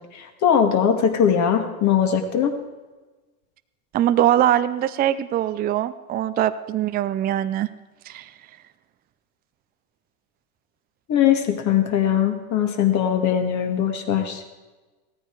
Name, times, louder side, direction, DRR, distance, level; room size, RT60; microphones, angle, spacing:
voice 1, 0.1-2.6 11.1-14.4, left 8 dB, 40° left, 5 dB, 2.2 m, -20 dB
voice 2, 3.9-7.7 8.1-8.3, right 12 dB, 20° right, 12 dB, 0.5 m, -22 dB
16.5 x 14.0 x 4.7 m, 1.2 s
hypercardioid pair, 115°, 46 cm